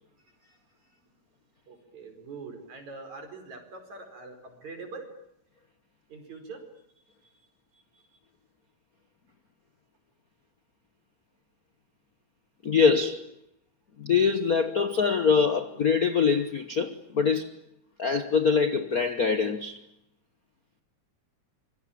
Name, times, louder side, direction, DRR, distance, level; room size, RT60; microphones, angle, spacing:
voice 1, 1.7-5.1 6.1-6.6 7.9-8.0, right 4 dB, 70° right, 6.2 m, -43 dB
voice 2, 12.6-13.2 14.0-17.5 18.0-19.8, left 5 dB, 65° left, 0.9 m, -24 dB
26.5 x 23.5 x 8.7 m
omnidirectional pair, 3.4 m